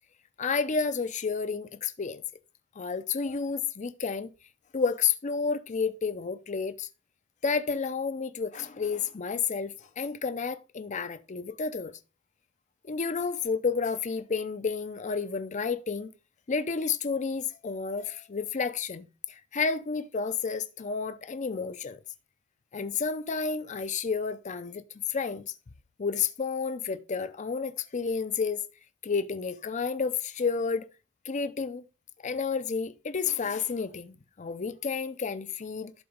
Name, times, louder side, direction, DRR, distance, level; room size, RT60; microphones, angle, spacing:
voice 1, 0.4-2.2 2.8-4.3 4.7-6.9 7.4-11.9 12.8-16.1 16.5-22.0 22.7-24.8 25.1-25.5 26.0-28.6 29.0-30.9 31.2-31.8 32.2-35.9, left 5 dB, 40° left, 0.5 m, -31 dB
11.5 x 3.9 x 5.1 m
head